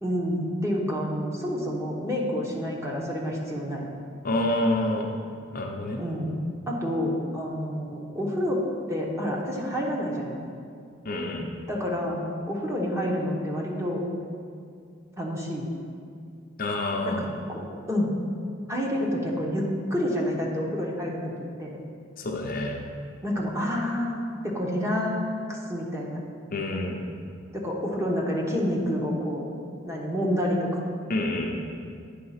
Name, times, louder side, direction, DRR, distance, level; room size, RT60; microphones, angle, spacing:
voice 1, 0.0-3.9 6.0-8.6 8.9-10.4 11.7-14.0 15.2-15.7 17.0-17.2 17.5-18.1 18.7-21.2 21.6-21.7 23.2-26.2 27.5-29.4 29.8-30.8, equal, 15° right, -3 dB, 1.0 m, -28 dB
voice 2, 4.2-5.1 5.5-6.0 11.0-11.5 16.6-17.2 22.2-22.8 26.5-27.0 31.1-31.5, left 1 dB, 45° left, 0 dB, 0.7 m, -27 dB
9.5 x 3.6 x 5.7 m, 2.3 s
head